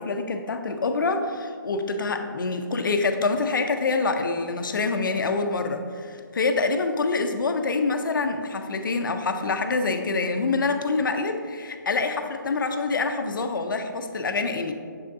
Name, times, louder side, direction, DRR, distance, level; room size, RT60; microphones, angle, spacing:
voice 1, 0.0-14.7, left 3 dB, 70° left, 6 dB, 0.5 m, -26 dB
7.0 x 5.2 x 2.6 m, 2.1 s
hypercardioid pair, 150°, 11 cm